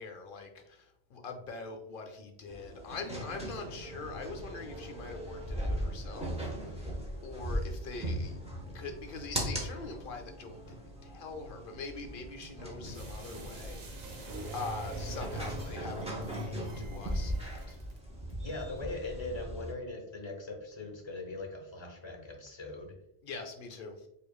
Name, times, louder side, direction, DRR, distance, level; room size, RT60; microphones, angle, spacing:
voice 1, 0.0-7.0 7.2-8.4 8.7-17.8 23.2-24.1, left 4 dB, 65° left, 5 dB, 0.7 m, -43 dB
sound 1, 2.5-19.7, equal, 5° right, 0.6 m, -39 dB
sound 2, 12.9-18.0 18.3-18.4, right 3 dB, 70° right, 0.9 m, -45 dB
voice 2, 18.4-22.9, left 2 dB, 30° left, 1 dB, 0.7 m, -41 dB
4.7 x 2.6 x 2.3 m, 0.81 s
omnidirectional pair, 1.1 m